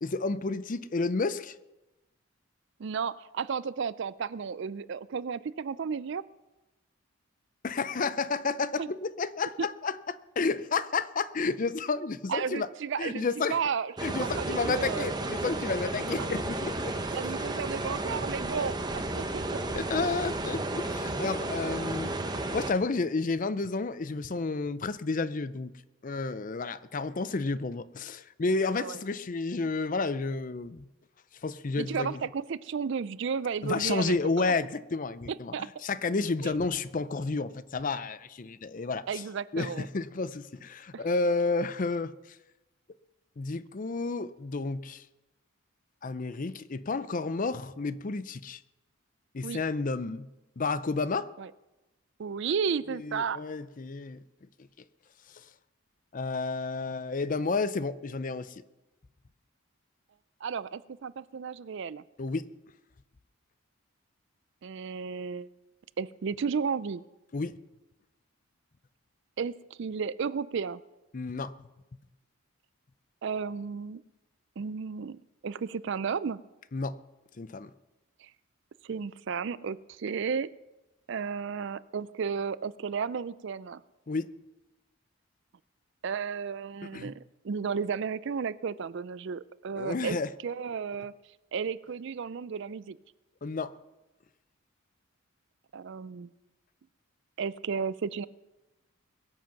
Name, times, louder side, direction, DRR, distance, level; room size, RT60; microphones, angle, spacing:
voice 1, 0.0-1.6 7.6-12.7 13.0-13.6 14.0-17.0 19.8-25.7 26.0-30.9 31.4-32.2 33.6-39.2 39.5-42.4 43.4-45.1 46.0-48.6 49.3-50.3 50.6-51.3 52.9-54.2 55.3-55.5 56.1-58.6 62.2-62.4 67.3-67.6 71.1-71.5 76.7-77.0 77.4-77.7 84.1-84.3 86.9-87.1 89.8-90.3 93.4-93.7, left 3 dB, 35° left, 15 dB, 0.5 m, -31 dB
voice 2, 2.8-6.2 8.8-8.9 9.6-9.7 12.3-13.9 14.2-15.1 17.1-19.6 28.8-29.0 31.8-34.5 35.5-35.7 36.4-36.5 39.1-39.9 40.9-41.0 49.4-49.6 51.4-51.5 52.2-53.4 60.4-62.0 64.6-65.5 66.0-67.0 69.4-69.5 69.8-70.8 73.2-74.0 74.6-76.4 78.2-78.3 78.8-80.5 81.1-83.8 86.0-90.2 90.4-91.1 91.5-93.0 95.7-96.3 97.4-98.3, right 6 dB, 55° right, 18 dB, 0.4 m, -33 dB
sound 1, 14.0-22.7, right 2 dB, 20° right, 0.9 m, -33 dB
22.0 x 7.7 x 5.9 m, 1.0 s
head